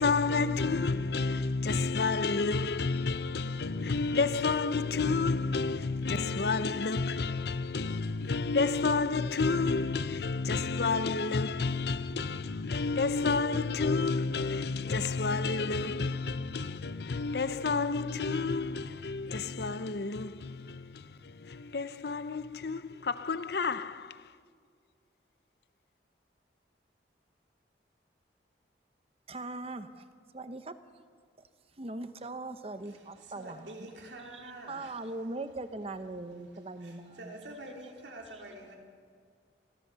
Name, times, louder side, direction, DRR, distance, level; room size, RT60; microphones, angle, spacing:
voice 1, 0.0-24.2, left 4 dB, 60° left, 0.6 m, -30 dB
voice 2, 29.3-30.0 30.3-30.8 31.8-37.4 38.3-38.4, right 2 dB, 35° right, 0.9 m, -41 dB
voice 3, 33.4-34.9 36.8-38.8, right 1 dB, 80° right, 3.2 m, -46 dB
29.0 x 14.0 x 6.9 m
head